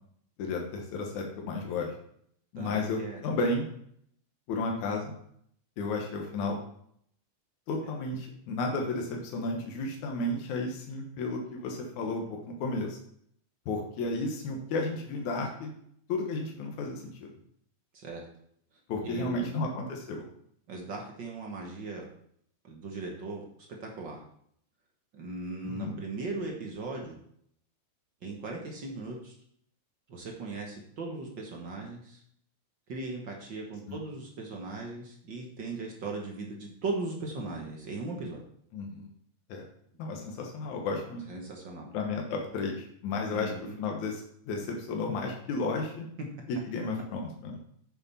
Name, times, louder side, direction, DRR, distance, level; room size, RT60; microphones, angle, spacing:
voice 1, 0.4-1.9 2.5-3.7 4.5-5.2 5.8-6.6 7.7-13.0 13.7-15.7 16.1-17.3 18.9-20.3 25.6-26.0 33.9-34.0 38.7-39.1 39.5-39.6 40.0-41.2 41.9-46.1 46.5-47.6, left 3 dB, 75° left, 1 dB, 2.7 m, -33 dB
voice 2, 2.5-3.2 17.9-18.2 19.0-19.5 20.7-22.0 22.6-23.4 23.8-24.2 25.1-27.2 28.2-29.3 30.1-32.2 32.9-38.4 41.3-41.9 43.3-43.8, right 3 dB, 50° right, 0 dB, 1.5 m, -38 dB
8.8 x 7.0 x 4.2 m, 0.67 s
omnidirectional pair, 3.4 m